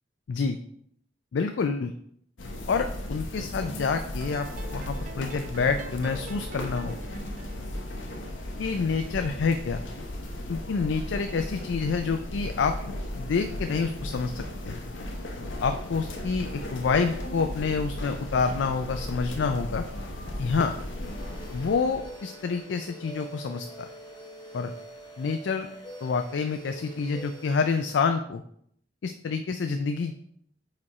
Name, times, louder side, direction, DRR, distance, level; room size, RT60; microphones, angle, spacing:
voice 1, 1.3-1.9 2.7-7.0 8.6-9.8 10.5-14.8 15.6-19.8 20.4-20.7 21.5-23.9 24.5-24.7 25.2-25.7 26.0-28.4 29.0-30.1, left 5 dB, 70° left, 7 dB, 0.4 m, -28 dB
sound 1, 2.4-22.1, left 1 dB, 85° left, 0.9 m, -36 dB
sound 2, 4.2-9.3, right 2 dB, 45° right, 0.5 m, -47 dB
sound 3, 21.0-27.9, equal, 25° left, 1.2 m, -45 dB
4.9 x 4.2 x 4.7 m, 0.68 s
head